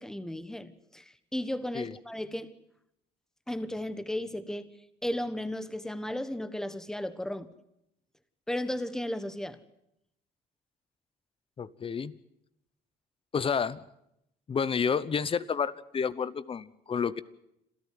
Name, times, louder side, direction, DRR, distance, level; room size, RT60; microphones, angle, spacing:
voice 1, 0.0-2.5 3.5-4.7 5.0-7.5 8.5-9.6, left 1 dB, 5° left, 13 dB, 1.3 m, -34 dB
voice 2, 11.6-12.1 13.3-13.8 14.5-17.2, left 6 dB, 35° left, 17 dB, 0.9 m, -30 dB
27.5 x 13.5 x 9.3 m, 0.81 s
cardioid pair, 110°, 17 cm